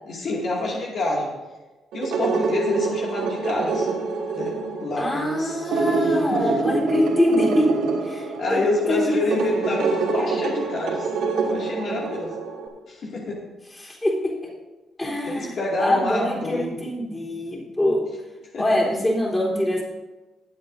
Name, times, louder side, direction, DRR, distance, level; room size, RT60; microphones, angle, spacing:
voice 1, 0.0-1.3 1.9-3.9 4.3-6.5 8.4-11.1 11.4-12.4 12.9-13.4 15.2-16.8 18.5-18.6, left 2 dB, 60° left, -3 dB, 2.4 m, -27 dB
sound 1, 1.9-12.7, right 3 dB, 90° right, 2.6 m, -26 dB
voice 2, 5.0-7.7 8.0-8.6 8.9-9.5 13.8-14.5 15.0-18.1 18.6-19.8, left 1 dB, 15° left, -4 dB, 3.7 m, -24 dB
20.0 x 8.0 x 2.7 m, 1.2 s
cardioid pair, 90°, 0 cm